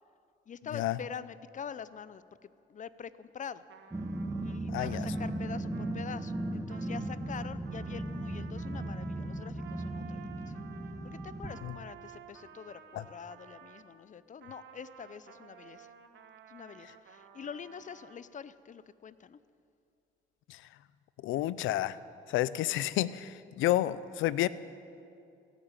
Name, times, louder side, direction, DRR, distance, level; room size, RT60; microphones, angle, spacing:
voice 1, 0.5-3.6 4.4-10.6 11.0-15.9 16.5-19.4, left 7 dB, 40° left, 16 dB, 0.5 m, -45 dB
Trumpet, 3.7-13.9 14.4-18.2, right 8 dB, 70° right, 1.1 m, -53 dB
Growling, 3.9-11.6, right 1 dB, 15° right, 1.2 m, -37 dB
voice 2, 4.7-5.1 11.6-11.7 20.5-20.6 21.2-22.0 22.3-24.5, left 14 dB, 85° left, 17 dB, 0.5 m, -30 dB
16.5 x 9.0 x 8.9 m, 2.5 s
cardioid pair, 90°, 20 cm